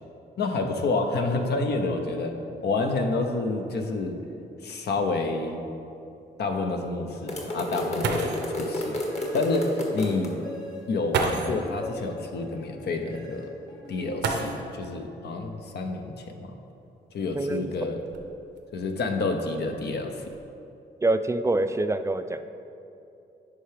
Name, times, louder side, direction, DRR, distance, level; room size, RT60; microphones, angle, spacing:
voice 1, 0.4-2.4 2.6-4.2 4.6-5.6 6.4-9.0 9.3-10.4 10.9-13.5 13.9-16.5 17.1-18.0 18.7-20.2, left 3 dB, 70° left, 4 dB, 0.7 m, -28 dB
sound 1, 4.1-4.2 4.6-4.7 5.3-5.4 7.7-7.8 8.0-8.6 9.9-10.0 11.1-11.7 14.2-14.9 16.3-16.4 17.1-18.6 19.3-19.6 20.0-20.4, right 4 dB, 85° right, 0.7 m, -31 dB
sound 2, 7.3-10.3, left 1 dB, 40° left, 1.5 m, -31 dB
sound 3, 9.1-14.9, left 1 dB, 20° left, 1.3 m, -43 dB
voice 2, 17.3-17.7 21.0-22.4, right 2 dB, 15° right, 10 dB, 0.3 m, -25 dB
10.0 x 4.6 x 3.4 m, 2.7 s
cardioid pair, 70°, 18 cm